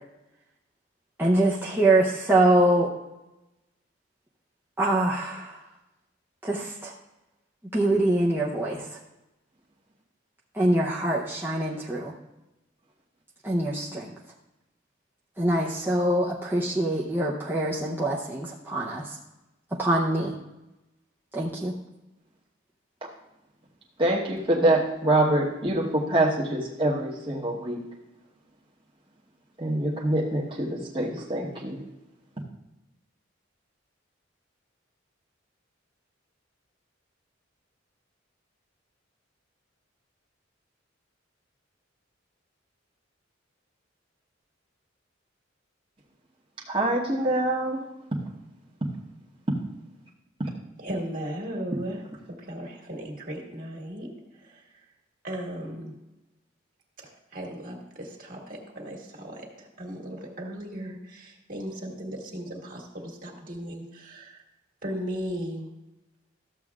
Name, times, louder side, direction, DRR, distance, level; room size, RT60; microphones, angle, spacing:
voice 1, 1.2-2.9 4.8-5.6 6.4-6.9 7.7-8.9 10.5-12.1 13.4-14.1 15.4-19.2 19.8-20.3 21.3-21.7, right 1 dB, 10° right, -4 dB, 0.7 m, -24 dB
voice 2, 24.0-27.8 29.6-31.8 46.7-47.8 50.4-50.5, right 1 dB, 25° right, -5 dB, 1.1 m, -25 dB
voice 3, 50.8-54.7 55.2-55.9 57.0-64.4 64.8-65.7, equal, 45° right, -1 dB, 1.8 m, -37 dB
13.5 x 7.7 x 2.4 m, 0.97 s
head